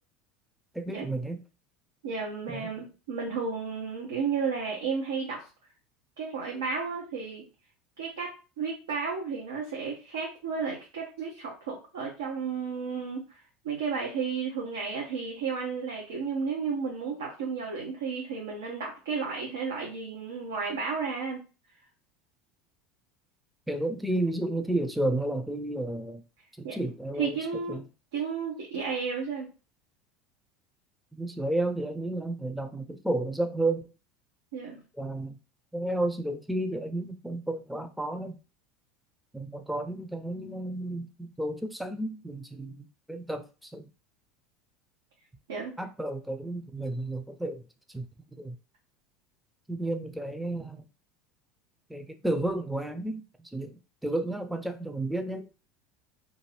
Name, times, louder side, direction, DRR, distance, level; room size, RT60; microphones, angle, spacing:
voice 1, 0.7-1.4 2.5-2.7 23.7-26.2 26.6-27.4 27.7-27.8 31.1-33.8 35.0-35.4 35.7-38.4 39.3-43.9 45.8-47.6 47.9-48.1 48.4-48.6 49.7-50.8 51.9-53.7 54.0-55.5, right 1 dB, 5° right, 0.4 m, -32 dB
voice 2, 2.0-5.5 6.2-7.4 8.0-21.4 26.6-26.8 27.2-27.8 28.1-29.5 34.5-34.8 45.5-45.8, right 5 dB, 85° right, 0.8 m, -33 dB
2.5 x 2.5 x 3.2 m
hypercardioid pair, 95°, 0 cm